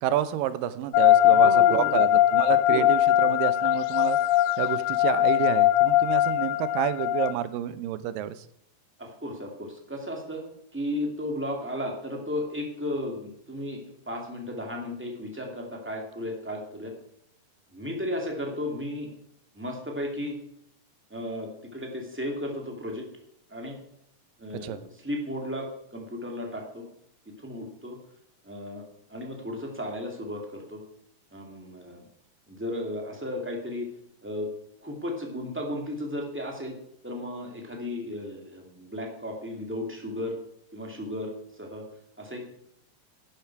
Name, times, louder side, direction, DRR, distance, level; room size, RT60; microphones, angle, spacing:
voice 1, 0.0-4.2 4.6-8.4 24.6-24.8, right 12 dB, 85° right, 14 dB, 2.4 m, -29 dB
sound 1, 0.9-7.3, left 13 dB, 85° left, 2.2 m, -21 dB
voice 2, 1.2-2.0 2.5-2.8 9.0-10.4 10.7-16.9 17.7-19.1 19.5-20.4 21.1-23.1 23.5-23.8 24.4-26.9 27.4-28.0 28.4-30.8 31.3-32.0 32.5-33.9 34.2-34.5 34.8-36.8 37.0-40.4 40.7-41.3 41.6-41.8 42.2-42.6, left 1 dB, 5° right, 1 dB, 1.6 m, -34 dB
12.5 x 10.5 x 4.6 m, 0.74 s
omnidirectional pair, 3.9 m